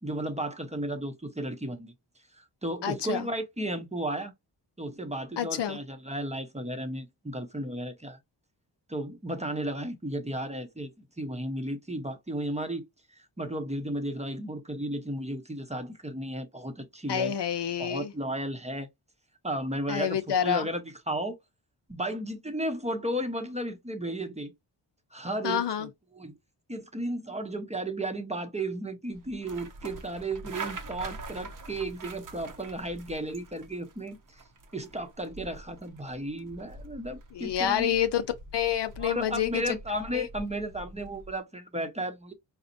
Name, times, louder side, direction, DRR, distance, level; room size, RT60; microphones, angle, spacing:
voice 1, 0.0-1.9 2.3-4.3 4.8-8.2 8.9-10.9 11.2-12.8 13.4-17.4 17.8-18.9 19.4-21.4 21.9-24.5 25.1-25.9 26.1-26.4 26.7-34.4 34.7-37.9 39.0-42.3, right 1 dB, 15° right, 0.7 m, -34 dB
voice 2, 2.8-3.3 5.4-5.8 17.1-18.1 19.9-20.7 25.4-25.9 37.3-38.2 38.5-39.7 40.1-40.3, left 9 dB, 70° left, 0.6 m, -28 dB
sound 1, 29.1-41.4, right 3 dB, 45° right, 0.7 m, -45 dB
4.0 x 2.1 x 2.6 m
cardioid pair, 45°, 44 cm